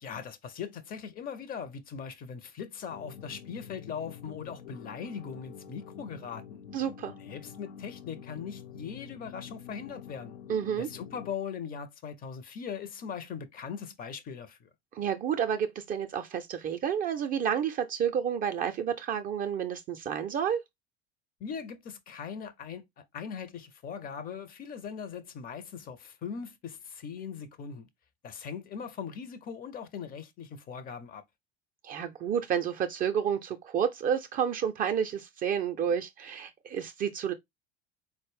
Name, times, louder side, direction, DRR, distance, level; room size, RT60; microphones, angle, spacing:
voice 1, 0.0-6.6 7.2-10.4 10.8-14.7 21.4-27.9 28.2-31.2, left 7 dB, 30° left, 0.5 m, -40 dB
sound 1, 2.9-11.3, left 7 dB, 70° left, 0.6 m, -47 dB
voice 2, 6.7-7.1 10.5-10.9 14.9-20.6 31.8-37.3, right 8 dB, 25° right, 0.4 m, -30 dB
4.0 x 2.0 x 3.2 m
figure-of-eight pair, 70°, 32 cm